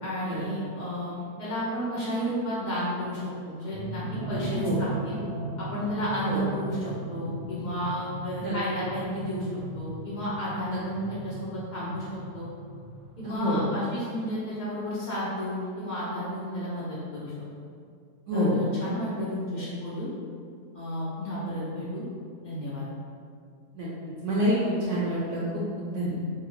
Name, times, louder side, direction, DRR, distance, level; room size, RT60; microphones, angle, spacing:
voice 1, 0.0-5.2 5.6-9.5 9.7-12.1 12.3-12.5 13.2-17.3 18.3-20.1 20.7-22.0 22.4-22.9, equal, 80° left, -9 dB, 0.4 m, -32 dB
sound 1, 3.7-13.4, right 2 dB, 90° right, 1.1 m, -37 dB
voice 2, 13.2-13.6 18.3-18.6 23.7-23.9 24.2-26.1, equal, 65° right, -7 dB, 0.8 m, -27 dB
2.8 x 2.6 x 2.9 m, 2.2 s
omnidirectional pair, 1.7 m